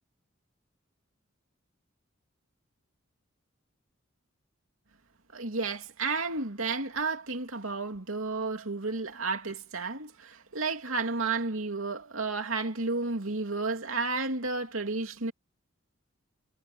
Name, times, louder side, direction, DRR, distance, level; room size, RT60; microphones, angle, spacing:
voice 1, 5.3-15.3, right 3 dB, 80° right, 2.8 m, -32 dB
head